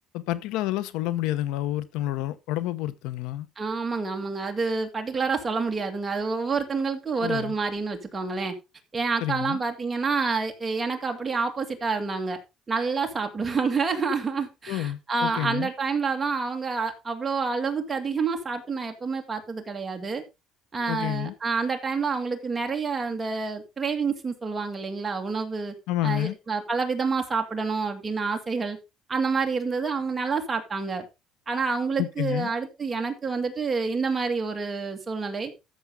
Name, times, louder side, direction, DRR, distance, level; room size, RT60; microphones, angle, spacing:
voice 1, 0.1-3.5 7.2-7.5 9.2-9.6 14.7-15.7 20.9-21.3 25.9-26.4 32.0-32.5, left 14 dB, 85° left, 0.9 m, -29 dB
voice 2, 3.6-8.5 8.9-12.4 12.7-20.2 20.7-25.7 26.0-28.8 29.1-31.0 31.5-35.5, right 4 dB, 20° right, 2.2 m, -28 dB
13.5 x 7.0 x 3.7 m
cardioid pair, 140°, 0 cm